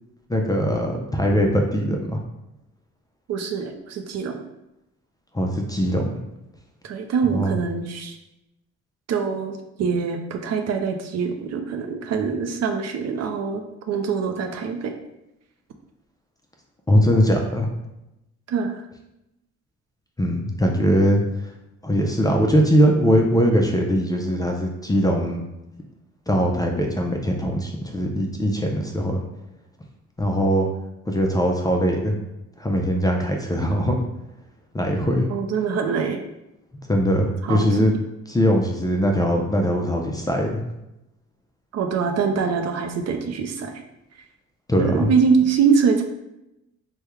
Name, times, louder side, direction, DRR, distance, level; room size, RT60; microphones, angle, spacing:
voice 1, 0.3-2.2 5.3-6.2 7.3-7.5 16.9-17.7 20.2-21.2 21.8-25.4 26.3-29.2 30.2-30.7 31.1-32.2 32.6-34.1 34.7-35.3 36.9-37.9 38.3-40.6 44.7-45.1, equal, 15° left, 1 dB, 0.4 m, -21 dB
voice 2, 3.3-4.4 6.8-8.2 9.1-14.9 18.5-18.7 35.3-36.2 37.4-37.7 41.7-43.7 44.8-46.0, right 5 dB, 60° right, 5 dB, 0.5 m, -24 dB
3.4 x 2.2 x 3.0 m, 0.89 s
cardioid pair, 90°, 30 cm